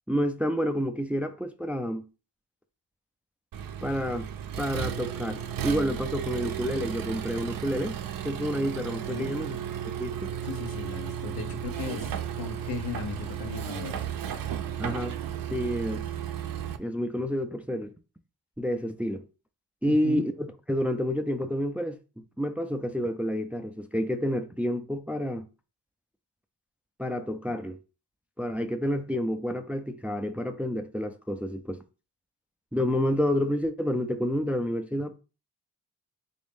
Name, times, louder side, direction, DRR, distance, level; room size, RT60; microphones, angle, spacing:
voice 1, 0.1-2.1 3.8-4.3 4.6-8.0 8.2-9.6 10.0-10.3 14.8-15.1 15.5-16.1 16.8-17.9 18.6-19.2 19.8-25.5 27.0-27.8 28.4-31.8 32.7-35.2, equal, 5° right, 0.4 m, -29 dB
Accelerating revving vroom, 3.5-16.8, right 9 dB, 60° right, 0.5 m, -34 dB
voice 2, 10.4-14.0 19.9-20.2, left 4 dB, 80° left, 0.8 m, -36 dB
3.1 x 2.7 x 3.4 m
supercardioid pair, 45°, 39 cm